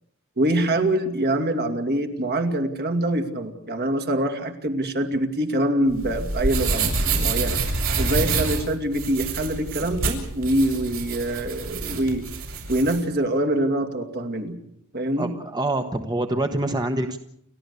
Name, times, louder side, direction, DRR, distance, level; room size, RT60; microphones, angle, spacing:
voice 1, 0.4-7.6 8.0-12.3 12.7-14.6 14.9-15.3, right 1 dB, 45° right, 6 dB, 2.5 m, -24 dB
sound 1, 5.9-13.0, right 3 dB, 65° right, 6.9 m, -27 dB
voice 2, 15.2-17.2, right 2 dB, 20° right, 5 dB, 1.1 m, -26 dB
30.0 x 13.0 x 8.3 m, 0.74 s
head